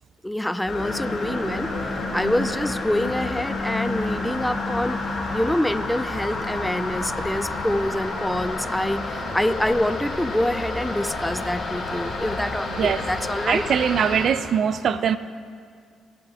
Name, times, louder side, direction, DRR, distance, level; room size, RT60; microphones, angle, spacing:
voice 1, 0.2-1.7 2.1-5.0 5.3-13.6, left 1 dB, 5° left, 13 dB, 0.4 m, -26 dB
sound 1, 0.7-14.3, left 2 dB, 50° left, 4.0 m, -29 dB
voice 2, 13.5-15.2, right 8 dB, 60° right, 13 dB, 0.4 m, -22 dB
26.0 x 13.0 x 2.4 m, 2.1 s
cardioid pair, 90°, 0 cm